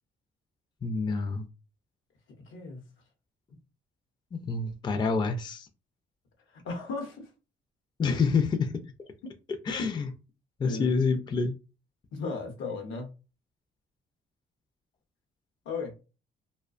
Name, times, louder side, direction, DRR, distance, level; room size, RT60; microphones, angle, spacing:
voice 1, 0.8-1.5 4.3-5.7 8.0-8.7 9.7-10.1 10.6-11.5, left 4 dB, 20° left, 0.4 m, -27 dB
voice 2, 2.4-2.8 6.5-7.3 8.1-8.2 10.6-10.9 12.1-13.1 15.6-15.9, left 4 dB, 80° left, 0.8 m, -35 dB
2.3 x 2.2 x 2.4 m
cardioid pair, 90°, 20 cm